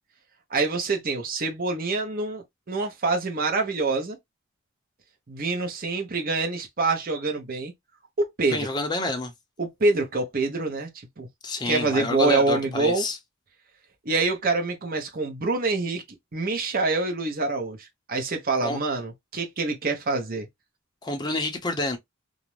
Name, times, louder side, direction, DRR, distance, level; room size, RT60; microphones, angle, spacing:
voice 1, 0.5-4.2 5.3-7.7 8.2-8.7 9.6-10.9 11.2-11.3 11.7-13.0 14.0-16.0 16.3-20.5, right 3 dB, 45° right, 0.7 m, -26 dB
voice 2, 8.5-9.3 11.4-13.2 18.6-18.8 21.0-22.0, left 2 dB, 20° left, 0.5 m, -28 dB
2.5 x 2.0 x 3.0 m
head